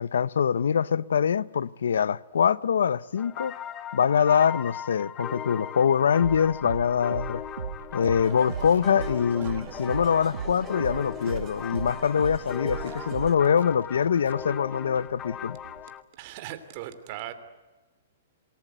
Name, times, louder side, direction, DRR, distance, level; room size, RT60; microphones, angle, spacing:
voice 1, 0.0-3.5 3.9-7.4 7.9-15.6, left 7 dB, 90° left, 0.7 m, -24 dB
sound 1, 3.2-16.0, left 10 dB, 20° left, 1.1 m, -39 dB
sound 2, 6.2-15.8, right 7 dB, 90° right, 1.8 m, -38 dB
sound 3, 8.2-13.4, right 9 dB, 20° right, 1.8 m, -45 dB
voice 2, 16.2-17.3, right 12 dB, 40° right, 2.9 m, -38 dB
27.5 x 20.0 x 9.3 m
hypercardioid pair, 155°, 0 cm